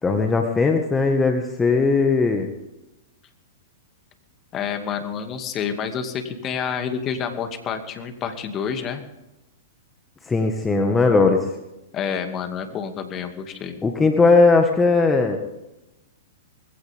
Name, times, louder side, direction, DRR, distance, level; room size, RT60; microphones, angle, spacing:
voice 1, 0.0-2.5 10.3-11.4 13.8-15.4, left 3 dB, 15° left, 4 dB, 1.7 m, -18 dB
voice 2, 4.5-9.0 11.9-13.8, left 7 dB, 30° left, 7 dB, 2.3 m, -28 dB
21.0 x 16.0 x 3.6 m, 0.96 s
hypercardioid pair, 110°, 0 cm